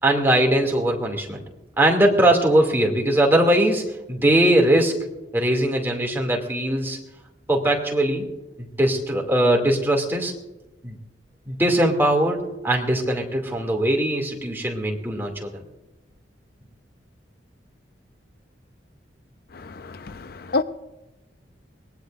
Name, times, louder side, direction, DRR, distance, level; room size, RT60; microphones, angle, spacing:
voice 1, 0.0-1.4 1.8-5.0 5.3-7.0 7.5-8.3 8.8-10.3 10.8-11.0 11.5-15.6, right 1 dB, 10° right, 2.6 m, -20 dB
voice 2, 19.5-20.6, left 3 dB, 55° left, 0.5 m, -28 dB
23.0 x 19.5 x 2.6 m
head